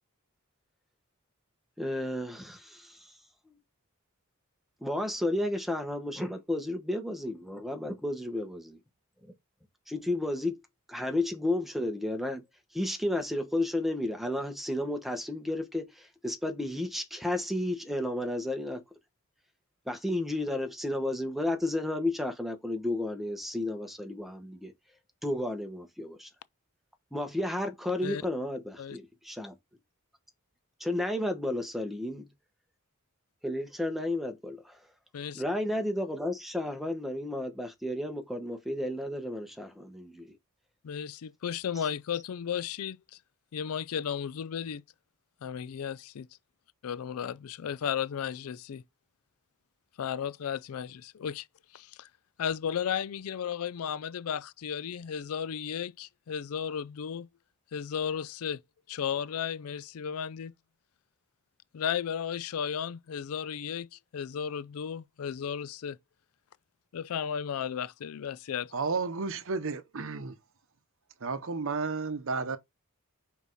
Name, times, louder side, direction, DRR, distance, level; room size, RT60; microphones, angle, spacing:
voice 1, 1.8-3.1 3.5-3.6 4.8-8.8 9.2-9.3 9.9-10.6 10.9-12.4 12.7-18.8 19.8-24.7 25.2-26.3 27.1-29.5 30.8-32.3 33.4-34.8 35.3-40.4, left 1 dB, ahead, 1.2 m, -32 dB
voice 2, 40.8-43.0 43.5-44.8 45.4-46.3 46.8-48.8 50.0-51.5 51.7-52.1 52.4-55.9 56.3-57.3 57.7-58.6 58.9-60.5 61.7-66.0 66.9-68.7, left 8 dB, 75° left, 0.4 m, -34 dB
voice 3, 68.7-70.4 71.2-72.6, right 4 dB, 65° right, 0.8 m, -32 dB
5.5 x 4.6 x 4.1 m
head